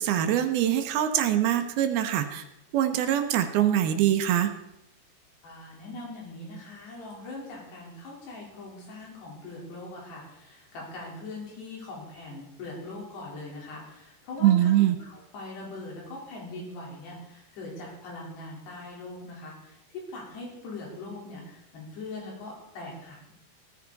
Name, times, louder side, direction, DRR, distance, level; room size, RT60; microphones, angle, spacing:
voice 1, 0.0-2.4 2.7-4.5 14.4-15.0, right 11 dB, 75° right, 7 dB, 2.7 m, -23 dB
voice 2, 5.4-23.3, left 2 dB, 85° left, -3 dB, 6.2 m, -41 dB
17.0 x 14.5 x 4.1 m, 0.83 s
omnidirectional pair, 4.7 m